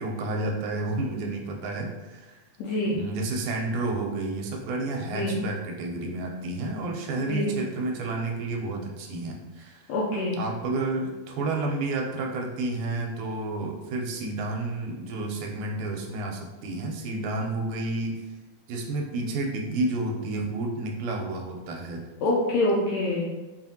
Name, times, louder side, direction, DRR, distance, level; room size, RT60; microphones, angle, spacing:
voice 1, 0.0-2.4 2.9-9.9 10.4-18.2 18.7-22.0, right 2 dB, 85° right, 1 dB, 2.0 m, -30 dB
voice 2, 2.6-3.0 5.1-5.3 7.3-7.5 9.9-10.4 22.2-23.3, left 2 dB, 85° left, -4 dB, 1.5 m, -25 dB
5.4 x 2.5 x 2.7 m, 1.1 s
omnidirectional pair, 3.6 m